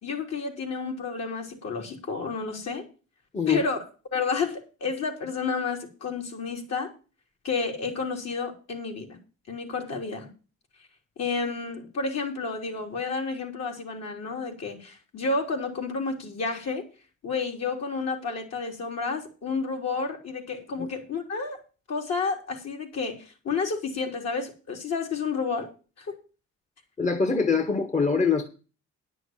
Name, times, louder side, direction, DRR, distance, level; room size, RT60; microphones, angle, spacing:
voice 1, 0.0-2.8 3.5-3.8 4.1-6.9 7.4-9.2 9.5-10.3 11.2-16.9 17.2-21.6 21.9-25.7 26.0-26.2, left 4 dB, 55° left, 3.8 m, -30 dB
voice 2, 27.0-28.5, left 5 dB, 25° left, 1.4 m, -24 dB
10.5 x 6.3 x 7.6 m
cardioid pair, 90°, 30 cm